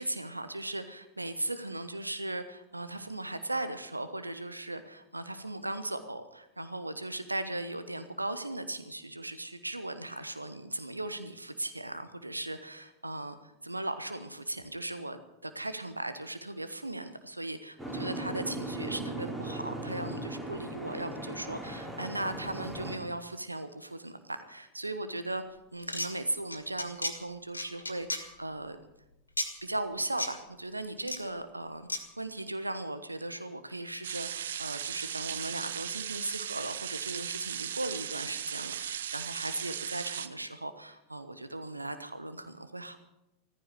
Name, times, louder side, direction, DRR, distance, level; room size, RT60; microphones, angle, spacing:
voice 1, 0.0-25.4 25.7-28.8 29.6-43.0, right 2 dB, 85° right, 10 dB, 1.1 m, -38 dB
Boat Water vehicle, 17.8-23.0, right 2 dB, 10° right, 3.8 m, -38 dB
sound 1, 25.8-26.1 26.5-27.1 27.5-28.2 29.4-29.5 30.2-30.3 31.0-31.2 31.9-32.0, left 2 dB, 80° left, 2.1 m, -33 dB
sound 2, 34.0-40.3, right 9 dB, 60° right, 0.8 m, -37 dB
15.0 x 14.5 x 6.7 m, 0.90 s
figure-of-eight pair, 90°, 0 cm